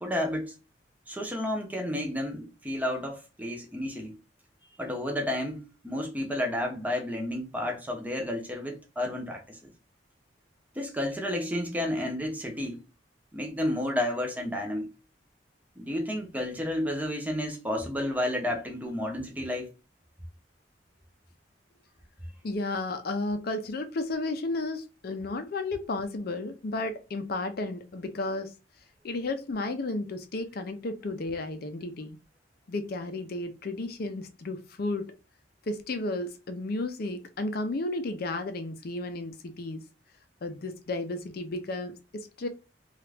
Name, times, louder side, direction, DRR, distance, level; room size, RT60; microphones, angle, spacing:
voice 1, 0.0-0.5 1.1-4.2 4.8-9.7 10.8-12.8 13.3-14.9 15.8-19.7, left 1 dB, 10° right, 0.6 m, -31 dB
voice 2, 22.4-28.5 29.0-32.2 32.7-35.1 35.7-39.8 40.4-42.5, left 2 dB, 55° left, 0.5 m, -33 dB
2.8 x 2.4 x 3.3 m
head